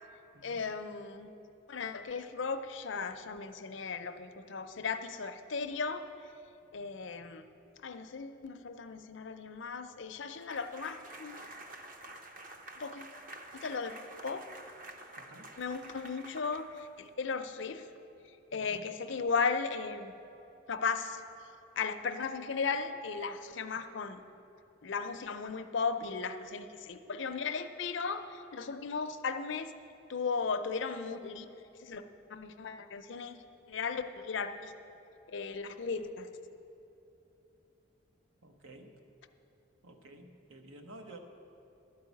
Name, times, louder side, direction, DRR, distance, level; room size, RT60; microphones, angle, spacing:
voice 1, 0.4-1.3 1.7-6.1 6.7-7.4 7.8-11.4 12.8-13.1 13.5-13.9 14.2-14.5 15.6-17.9 18.3-20.2 20.7-21.2 21.8-24.2 24.8-29.7 30.1-31.5 31.8-32.0 32.3-33.4 33.7-34.7 35.3-36.3, left 5 dB, 70° left, 8 dB, 0.5 m, -36 dB
sound 1, 10.4-17.1, right 2 dB, 40° right, 0.7 m, -49 dB
voice 2, 15.2-15.5 18.5-18.9 38.4-38.9 39.8-41.2, right 2 dB, 90° right, 4 dB, 1.0 m, -52 dB
12.0 x 4.8 x 8.3 m, 2.9 s
head